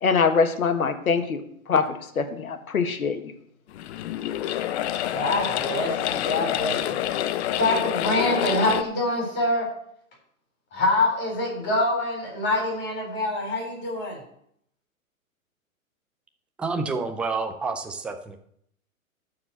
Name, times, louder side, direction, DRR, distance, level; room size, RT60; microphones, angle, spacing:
voice 1, 0.0-1.4 1.7-1.9 2.2-3.3, left 5 dB, 80° left, 7 dB, 1.6 m, -23 dB
sound 1, 3.7-8.8, left 12 dB, 50° left, 0.9 m, -27 dB
voice 2, 5.1-7.0 7.5-9.7 10.7-14.2, left 2 dB, 25° left, 0 dB, 4.1 m, -25 dB
voice 3, 16.6-18.4, right 4 dB, 5° right, 6 dB, 0.4 m, -29 dB
12.5 x 4.8 x 7.6 m, 0.70 s
hypercardioid pair, 115°, 42 cm